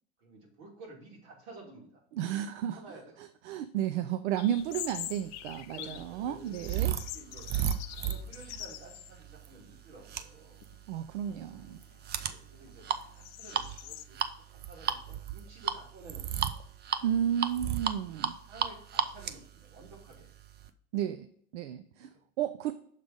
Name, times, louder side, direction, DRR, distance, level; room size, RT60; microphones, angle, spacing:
voice 1, 0.2-2.0 2.4-3.2 5.7-7.5 7.9-10.6 12.1-14.2 14.5-16.5 16.9-17.2 18.1-18.2 18.5-20.3 22.0-22.2, right 3 dB, 70° right, -1 dB, 2.6 m, -52 dB
voice 2, 2.1-2.8 3.5-6.9 10.9-11.8 17.0-18.4 20.9-21.3 21.5-22.1 22.4-22.7, right 10 dB, 85° right, 10 dB, 0.5 m, -32 dB
sound 1, 4.4-6.1 6.5-9.2 9.5-9.6 10.4-10.8 11.2-14.0, left 15 dB, 50° left, 0.5 m, -44 dB
sound 2, 5.0-20.7, right 9 dB, 30° right, 0.5 m, -35 dB
6.5 x 3.5 x 5.1 m, 0.64 s
hypercardioid pair, 95°, 34 cm